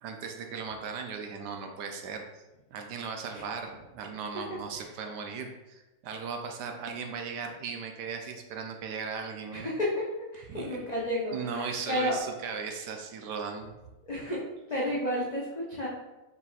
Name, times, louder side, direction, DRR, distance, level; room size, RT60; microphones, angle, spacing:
voice 1, 0.0-2.4 2.7-9.7 10.5-10.9 11.3-13.7, right 5 dB, 75° right, 4 dB, 1.1 m, -37 dB
voice 2, 9.5-10.0 10.3-12.2 14.0-14.4 14.7-15.9, equal, 85° left, -7 dB, 0.3 m, -31 dB
4.2 x 4.1 x 2.4 m, 1.0 s
omnidirectional pair, 2.0 m